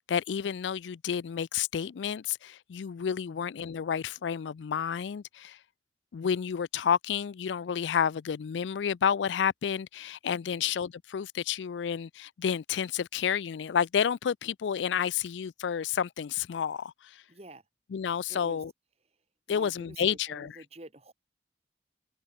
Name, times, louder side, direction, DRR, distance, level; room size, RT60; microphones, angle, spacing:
voice 1, 0.1-5.6 6.1-17.2 17.9-18.7 19.5-20.5, left 8 dB, 90° left, 0.4 m, -30 dB
voice 2, 17.3-17.6 18.3-18.6 19.5-21.1, right 2 dB, 35° right, 2.1 m, -49 dB
open air
head